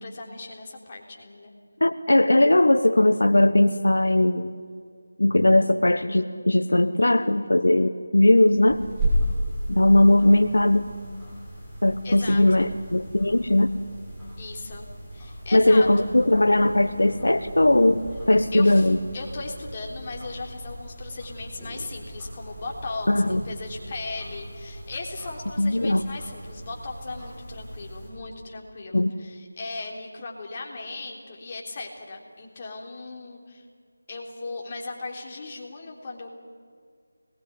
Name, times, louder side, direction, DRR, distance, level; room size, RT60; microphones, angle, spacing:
voice 1, 0.0-1.5 12.0-12.7 14.4-14.8 15.1-16.1 18.5-33.6 34.1-36.3, left 3 dB, 30° left, 0 dB, 3.5 m, -37 dB
voice 2, 1.8-4.5 5.2-8.8 9.7-10.9 11.8-13.7 15.5-19.0 23.1-23.4 25.6-26.0 28.9-29.1, left 1 dB, 80° left, 9 dB, 1.2 m, -19 dB
sound 1, 8.4-28.1, equal, 5° right, 6.2 m, -35 dB
25.0 x 20.0 x 9.6 m, 2.1 s
figure-of-eight pair, 165°, 0 cm